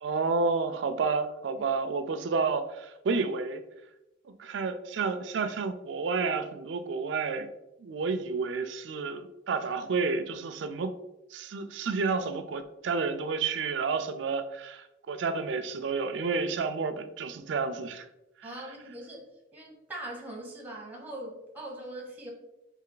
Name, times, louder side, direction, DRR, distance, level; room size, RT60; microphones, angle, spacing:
voice 1, 0.0-3.6 4.3-7.5 7.8-10.9 11.3-18.1, right 4 dB, 70° right, 9 dB, 0.4 m, -30 dB
voice 2, 18.4-22.3, right 1 dB, 10° right, 0 dB, 0.9 m, -41 dB
3.3 x 3.0 x 3.8 m, 0.91 s
head